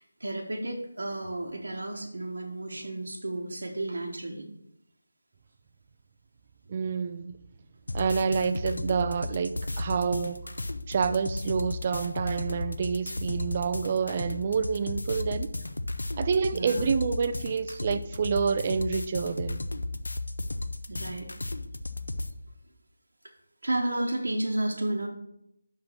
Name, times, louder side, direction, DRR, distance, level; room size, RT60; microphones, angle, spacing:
voice 1, 0.0-4.5 16.5-16.9 20.9-21.3 23.6-25.1, right 1 dB, 70° right, 1 dB, 1.1 m, -32 dB
voice 2, 6.7-7.4 7.9-10.5 10.9-15.5 16.2-19.6, right 6 dB, 30° right, 11 dB, 0.4 m, -28 dB
sound 1, 7.9-22.3, left 2 dB, 75° left, 0.6 m, -34 dB
5.7 x 5.0 x 5.9 m, 0.78 s
figure-of-eight pair, 165°, 0 cm